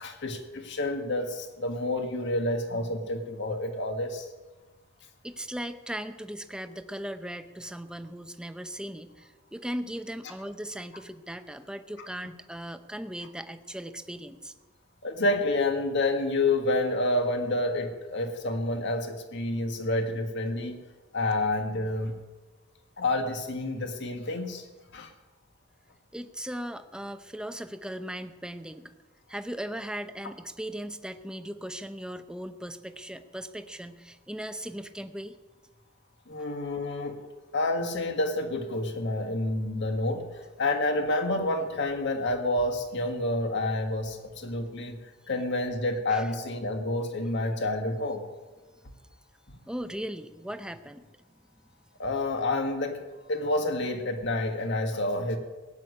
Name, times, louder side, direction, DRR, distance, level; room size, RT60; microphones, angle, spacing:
voice 1, 0.0-4.3 15.0-20.8 21.1-22.1 23.0-24.6 24.9-25.1 36.3-37.2 37.5-40.3 40.6-45.0 45.3-48.2 49.5-49.6 52.0-53.0 53.3-55.4, left 2 dB, 60° left, 5 dB, 1.8 m, -29 dB
voice 2, 5.2-14.5 26.1-28.9 29.3-35.4 46.1-46.3 49.7-51.2, equal, 5° right, 9 dB, 0.7 m, -38 dB
16.5 x 8.4 x 9.6 m, 1.3 s
head